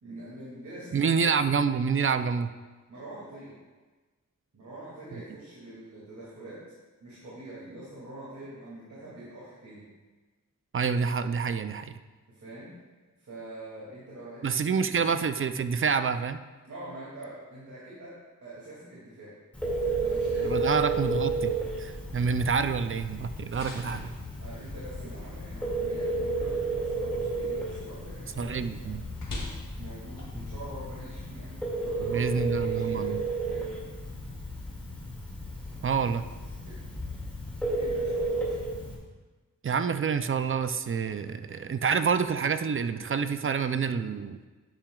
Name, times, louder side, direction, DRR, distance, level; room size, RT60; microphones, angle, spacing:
voice 1, 0.0-1.5 2.9-3.5 4.5-6.6 7.0-9.9 12.3-12.7 13.2-15.1 16.6-19.3 19.8-20.9 21.2-21.5 24.4-29.2 29.8-33.7 36.6-36.8 37.6-38.6, right 1 dB, 60° right, -8 dB, 2.3 m, -45 dB
voice 2, 0.9-2.5 10.7-11.9 14.4-16.4 20.4-21.5 21.8-24.1 28.4-29.0 32.1-33.2 35.8-36.2 39.6-44.4, right 6 dB, 40° right, 10 dB, 0.4 m, -27 dB
Telephone, 19.5-38.9, right 2 dB, 5° left, 2.1 m, -33 dB
sound 1, 20.5-31.0, left 1 dB, 80° left, 2.5 m, -48 dB
11.5 x 8.9 x 2.3 m, 1.3 s
wide cardioid pair, 130°, 32 cm